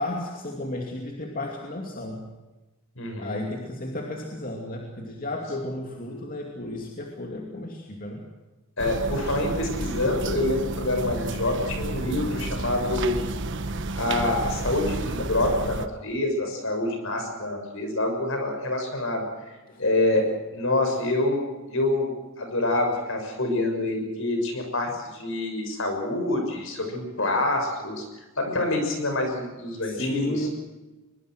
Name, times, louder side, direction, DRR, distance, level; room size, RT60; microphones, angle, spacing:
voice 1, 0.0-2.3 3.2-8.3 19.7-19.8 29.8-30.5, left 1 dB, 40° left, 1 dB, 2.6 m, -33 dB
voice 2, 3.0-3.4 8.8-13.2 13.9-19.5 19.8-28.1 28.4-30.5, left 2 dB, 65° left, 4 dB, 6.5 m, -26 dB
sound 1, 8.8-15.9, right 2 dB, 60° right, 1.3 m, -31 dB
23.0 x 22.5 x 6.3 m, 1.1 s
head